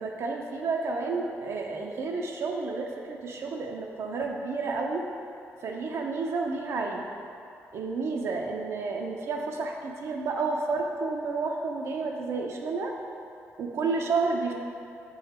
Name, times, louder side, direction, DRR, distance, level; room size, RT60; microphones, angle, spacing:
voice 1, 0.0-5.1 5.6-7.0 7.7-12.9 13.6-14.5, right 4 dB, 55° right, 1 dB, 0.6 m, -30 dB
7.4 x 3.9 x 4.2 m, 2.6 s
cardioid pair, 160°, 5 cm